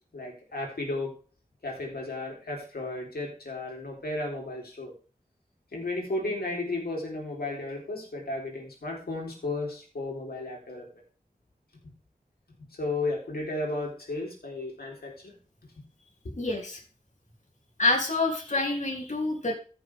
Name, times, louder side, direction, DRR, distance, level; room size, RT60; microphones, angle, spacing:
voice 1, 0.1-1.1 1.6-4.9 5.7-10.8 12.8-15.3 16.2-16.3, left 2 dB, 90° left, -1 dB, 3.6 m, -34 dB
voice 2, 16.4-16.8 17.8-19.5, left 2 dB, 50° left, 0 dB, 3.1 m, -27 dB
14.5 x 6.7 x 3.6 m, 0.38 s
wide cardioid pair, 55°, 16 cm